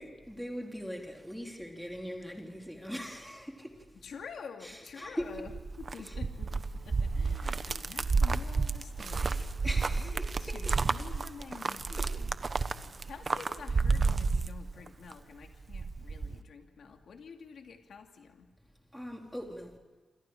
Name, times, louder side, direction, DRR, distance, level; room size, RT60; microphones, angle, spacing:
voice 1, 0.0-3.9 4.6-5.5 6.0-6.2 9.6-10.8 12.0-12.2 12.5-12.7 18.9-19.8, equal, ahead, 3.9 m, -41 dB
voice 2, 4.0-5.5 5.8-12.4 13.0-18.5, left 6 dB, 85° left, 2.4 m, -48 dB
sound 1, 5.2-15.1 15.4-16.4, right 4 dB, 40° right, 1.1 m, -31 dB
28.0 x 27.5 x 4.9 m
wide cardioid pair, 110°, 0 cm